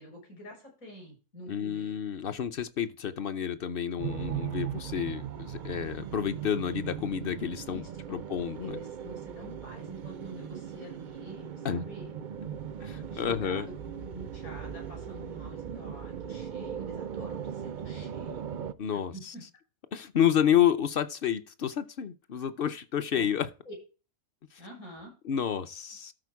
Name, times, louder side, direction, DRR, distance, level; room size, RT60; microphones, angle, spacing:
voice 1, 0.0-2.0 7.7-8.3 8.6-18.5 18.9-19.5 23.1-23.3 23.7-23.8 24.6-25.1, equal, 75° left, 6.3 m, -47 dB
voice 2, 1.5-7.8 8.1-8.8 11.6-11.8 12.8-13.6 18.8-19.3 19.9-23.5 25.3-26.1, left 9 dB, 55° left, 0.6 m, -29 dB
sound 1, 4.0-18.7, right 9 dB, 80° right, 0.4 m, -39 dB
12.5 x 4.4 x 4.6 m
omnidirectional pair, 1.5 m